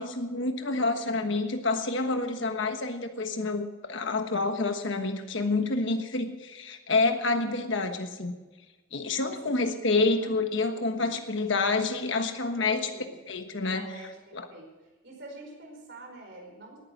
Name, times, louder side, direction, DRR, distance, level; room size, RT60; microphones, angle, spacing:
voice 1, 0.0-8.4 8.9-12.9 13.3-13.9 14.3-14.5, left 3 dB, 60° left, 6 dB, 1.3 m, -28 dB
voice 2, 9.2-10.5 10.7-11.2 12.6-13.2 13.7-14.7 15.0-16.8, right 1 dB, 55° right, 1 dB, 5.1 m, -46 dB
19.5 x 9.6 x 6.0 m, 1.2 s
head